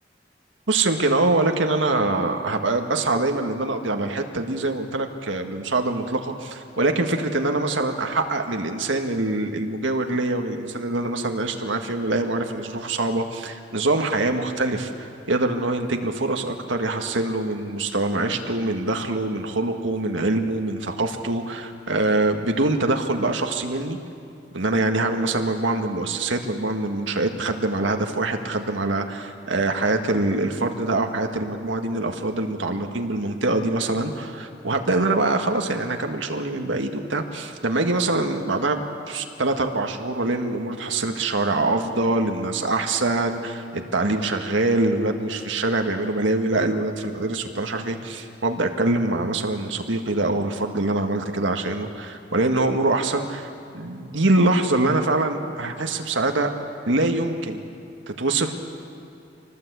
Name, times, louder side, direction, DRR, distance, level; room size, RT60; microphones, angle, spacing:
voice 1, 0.7-24.0 24.5-53.5 53.7-56.5 56.9-57.6 58.2-58.5, right 2 dB, 90° right, 4 dB, 1.7 m, -24 dB
25.5 x 19.0 x 8.3 m, 2.6 s
head